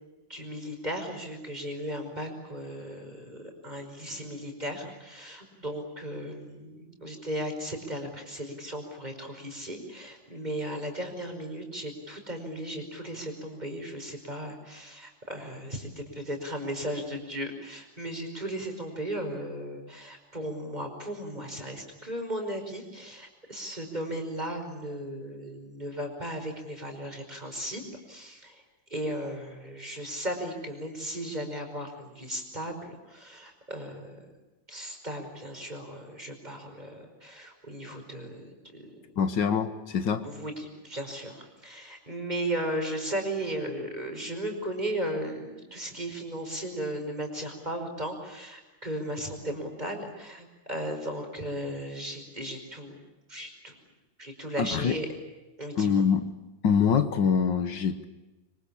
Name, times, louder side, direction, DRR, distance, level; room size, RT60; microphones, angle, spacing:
voice 1, 0.3-27.8 28.1-28.6 28.9-34.3 34.7-39.0 40.2-53.0 53.3-53.7 54.2-55.1 55.6-56.0, right 1 dB, 20° right, 4 dB, 5.4 m, -36 dB
voice 2, 39.2-40.3 54.6-55.0 55.8-56.3 56.6-58.0, left 6 dB, 70° left, 10 dB, 2.0 m, -24 dB
25.5 x 25.0 x 8.7 m, 1.1 s
omnidirectional pair, 2.1 m